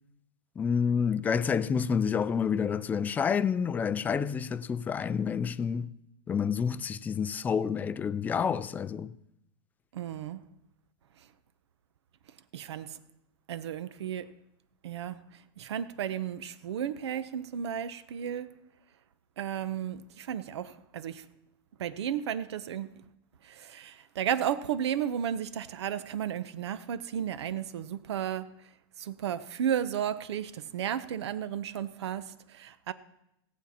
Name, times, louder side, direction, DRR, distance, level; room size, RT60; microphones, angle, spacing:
voice 1, 0.6-5.9 6.3-9.1, left 6 dB, 10° left, 0.3 m, -29 dB
voice 2, 9.9-10.4 12.5-13.0 13.5-14.3 14.8-18.5 19.4-21.3 21.8-22.9 23.4-28.7 29.0-32.9, right 9 dB, 85° right, 0.8 m, -34 dB
18.0 x 7.5 x 4.3 m
supercardioid pair, 145°, 14 cm